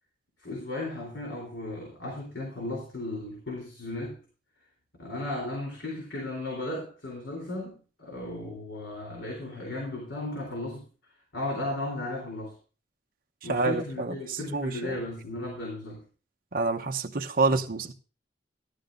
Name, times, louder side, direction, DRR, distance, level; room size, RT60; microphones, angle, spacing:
voice 1, 0.4-4.2 5.0-10.9 11.3-12.5 13.4-16.0, left 2 dB, 90° left, 3.6 m, -35 dB
voice 2, 13.5-14.9 16.5-17.9, right 3 dB, 55° right, 0.9 m, -28 dB
16.5 x 11.5 x 2.6 m
head